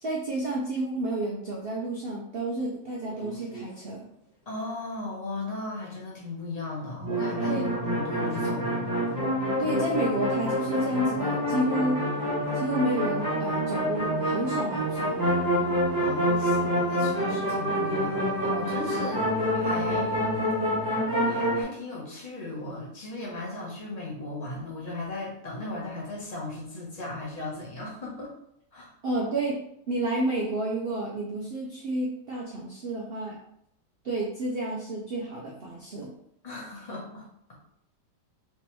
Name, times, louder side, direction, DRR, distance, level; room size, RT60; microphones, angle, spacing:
voice 1, 0.0-4.1 7.5-7.7 9.6-12.0 12.5-15.2 29.0-29.6 29.9-33.4 34.0-36.1, right 1 dB, 80° right, -2 dB, 0.5 m, -30 dB
sound 1, 3.1-3.6 7.0-21.6, equal, 20° right, 0.6 m, -27 dB
voice 2, 4.5-8.9 15.9-20.2 21.2-28.3 28.7-28.9 36.4-37.5, left 2 dB, 30° left, -4 dB, 0.8 m, -37 dB
3.4 x 3.1 x 3.0 m, 0.74 s
omnidirectional pair, 1.8 m